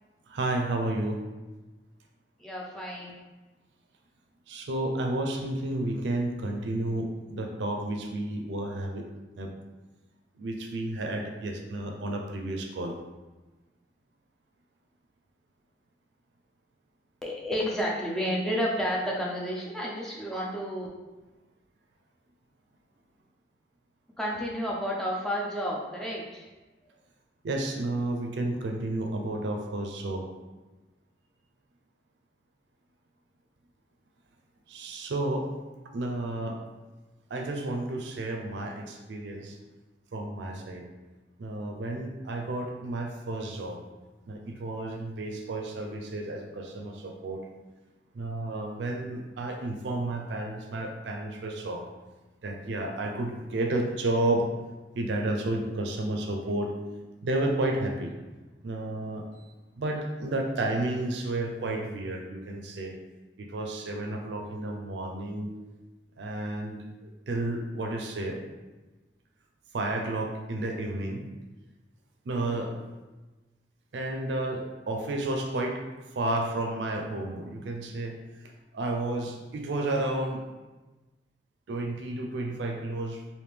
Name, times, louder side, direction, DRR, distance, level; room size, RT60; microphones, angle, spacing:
voice 1, 0.3-1.2 4.5-9.1 9.4-9.5 10.4-12.9 27.4-30.2 34.7-35.5 35.9-36.6 37.3-39.6 40.1-40.8 41.4-43.8 44.3-47.4 48.1-51.8 52.4-54.5 54.9-56.7 57.2-58.1 58.6-62.9 63.4-65.5 66.2-68.4 69.7-71.3 72.3-72.8 73.9-75.8 76.1-78.2 78.4-80.5 81.7-83.2, right 2 dB, 80° right, 2 dB, 0.4 m, -31 dB
voice 2, 2.4-3.1 17.2-20.9 24.2-26.4, equal, 5° left, -4 dB, 0.5 m, -31 dB
3.4 x 2.5 x 3.3 m, 1.2 s
head